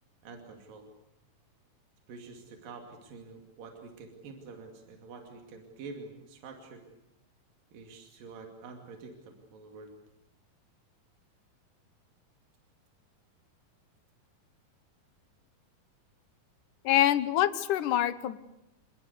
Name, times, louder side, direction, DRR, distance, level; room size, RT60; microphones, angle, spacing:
voice 1, 0.2-0.9 2.1-6.8 7.7-10.0, right 4 dB, 70° right, 3 dB, 4.1 m, -47 dB
voice 2, 16.8-18.4, left 12 dB, 70° left, 14 dB, 2.4 m, -25 dB
28.0 x 19.5 x 8.2 m, 0.86 s
omnidirectional pair, 4.2 m